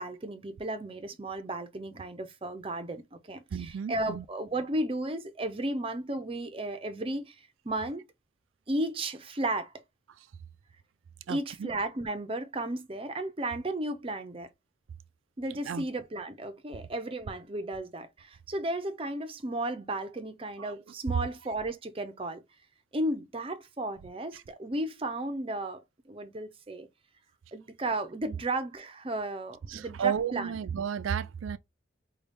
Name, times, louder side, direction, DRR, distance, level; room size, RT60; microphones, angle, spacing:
voice 1, 0.0-8.0 8.7-9.7 11.3-14.5 15.4-22.4 22.9-26.9 27.5-30.5, right 1 dB, 30° right, 0.5 m, -34 dB
voice 2, 3.5-4.2 11.3-11.7 15.7-15.8 20.6-20.7 24.3-24.4 29.7-31.6, right 7 dB, 85° right, 0.4 m, -33 dB
5.2 x 2.3 x 3.3 m
head